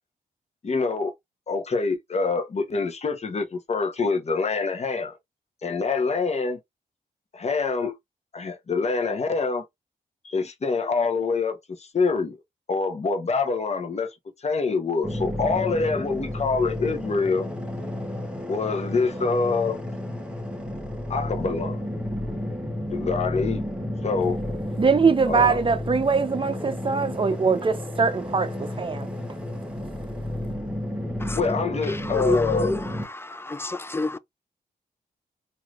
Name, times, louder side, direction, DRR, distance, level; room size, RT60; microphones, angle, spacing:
voice 1, 0.6-1.1 1.5-5.2 5.6-6.6 7.3-8.0 8.3-9.6 10.2-12.4 12.7-17.5 18.4-19.8 21.1-21.8 22.9-23.6 24.0-24.4 25.3-25.6 31.3-32.7, left 4 dB, 40° left, 0.9 m, -25 dB
sound 1, 15.0-33.0, left 1 dB, 5° right, 1.0 m, -32 dB
voice 2, 24.8-29.1, right 5 dB, 30° right, 0.7 m, -22 dB
voice 3, 32.1-32.8 33.2-34.2, left 3 dB, 15° left, 0.3 m, -28 dB
3.2 x 2.7 x 2.4 m
cardioid pair, 75°, 17 cm